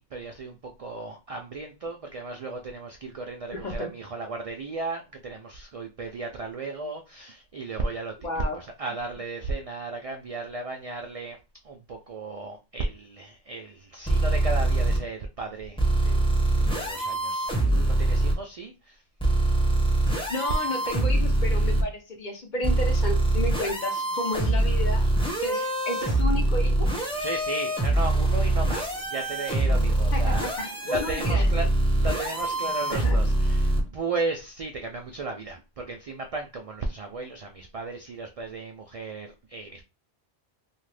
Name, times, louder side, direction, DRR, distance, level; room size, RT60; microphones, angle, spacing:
voice 1, 0.0-8.2 8.5-11.4 11.6-19.0 27.2-31.7 32.0-39.8, right 3 dB, 65° right, 0.3 m, -35 dB
voice 2, 3.5-3.9 8.2-8.6 20.3-25.1 25.4-26.9 27.1-27.3 30.1-31.4 32.9-33.2, left 1 dB, 50° left, 0.7 m, -32 dB
sound 1, 14.0-15.0 15.8-18.3 19.2-21.8 22.6-33.8, right 2 dB, 5° left, 0.5 m, -24 dB
2.7 x 2.4 x 3.2 m
omnidirectional pair, 1.1 m